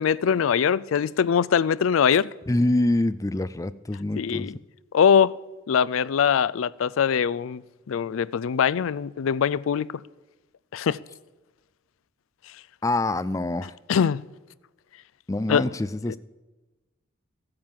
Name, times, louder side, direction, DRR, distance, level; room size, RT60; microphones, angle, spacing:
voice 1, 0.0-2.3 4.2-4.6 4.9-5.3 5.7-7.6 7.9-9.9 10.7-11.0 13.9-14.2 15.5-15.6, left 7 dB, 85° left, 0.4 m, -22 dB
voice 2, 2.5-4.5 12.8-13.7 15.3-16.2, left 2 dB, 15° left, 0.4 m, -25 dB
14.0 x 9.7 x 7.4 m
head